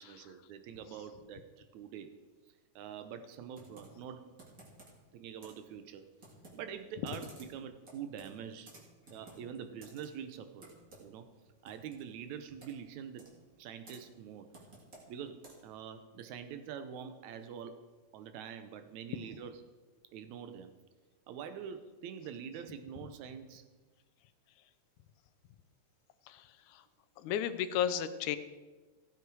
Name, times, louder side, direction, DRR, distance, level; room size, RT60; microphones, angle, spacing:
voice 1, 0.0-2.1 2.8-4.2 5.1-6.0 6.5-8.7 9.1-10.7 11.0-11.3 11.6-13.3 13.6-14.5 15.1-17.8 18.1-19.6 20.1-20.7 21.3-23.6, right 8 dB, 75° right, 10 dB, 2.0 m, -45 dB
Computer keyboard, 3.5-15.8, right 2 dB, 30° right, 2.1 m, -57 dB
voice 2, 26.3-26.8 27.2-28.4, left 9 dB, 80° left, 11 dB, 2.1 m, -34 dB
15.5 x 8.2 x 4.7 m, 1.3 s
omnidirectional pair, 3.5 m